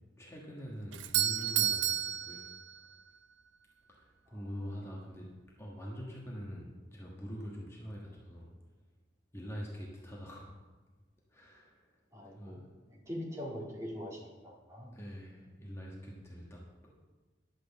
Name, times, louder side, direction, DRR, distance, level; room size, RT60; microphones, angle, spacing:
voice 1, 0.2-2.5 3.9-5.3 5.6-8.5 9.3-10.6 11.3-13.1 14.9-16.9, equal, 15° left, -3 dB, 1.3 m, -45 dB
Doorbell, 0.9-3.1, right 11 dB, 80° right, 0.6 m, -32 dB
voice 2, 12.1-12.6 12.9-14.9, equal, 15° right, -3 dB, 2.0 m, -42 dB
11.0 x 6.3 x 7.0 m, 1.3 s
head